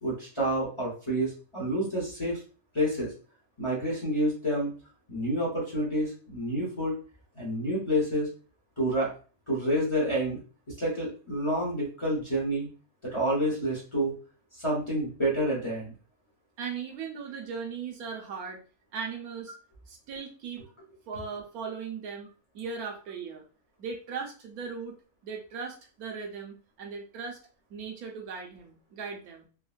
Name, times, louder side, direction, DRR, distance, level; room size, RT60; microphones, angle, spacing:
voice 1, 0.0-2.4 2.7-3.1 3.6-4.7 5.1-7.0 7.4-8.3 8.8-9.1 9.5-10.4 10.7-12.7 13.0-14.1 14.6-15.9, equal, 25° left, -6 dB, 0.9 m, -28 dB
voice 2, 16.6-18.6 18.9-19.5 19.9-20.6 21.1-22.3 22.5-23.4 23.8-25.0 25.2-27.4 27.7-29.5, right 5 dB, 85° right, 1 dB, 1.2 m, -38 dB
3.6 x 2.2 x 2.4 m, 0.37 s
omnidirectional pair, 1.5 m